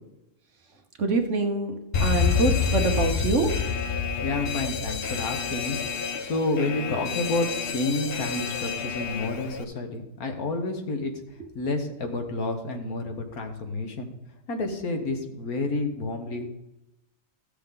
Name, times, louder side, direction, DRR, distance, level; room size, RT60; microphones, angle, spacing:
voice 1, 1.0-3.7, right 3 dB, 55° right, 4 dB, 1.4 m, -25 dB
Alarm, 1.9-9.6, left 6 dB, 50° left, 0.8 m, -28 dB
voice 2, 4.1-14.1 14.5-16.5, left 2 dB, 80° left, 4 dB, 1.8 m, -30 dB
15.0 x 6.9 x 3.8 m, 0.89 s
omnidirectional pair, 1.5 m